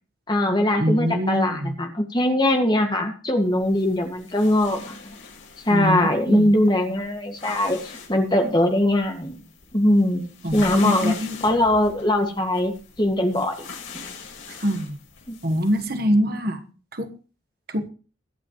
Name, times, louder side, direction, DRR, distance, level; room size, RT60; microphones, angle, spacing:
voice 1, 0.3-5.1 5.7-9.4 9.7-11.1 11.4-12.7 13.0-13.6 15.3-15.4, left 1 dB, 20° left, 4 dB, 1.9 m, -21 dB
voice 2, 0.8-1.7 5.7-6.5 10.4-11.3 14.6-15.0 15.4-16.6 16.9-17.1 17.7-17.9, equal, 50° right, 7 dB, 1.3 m, -23 dB
sound 1, 3.5-16.0, left 5 dB, 80° left, 6.9 m, -42 dB
23.5 x 8.9 x 3.1 m, 0.37 s
head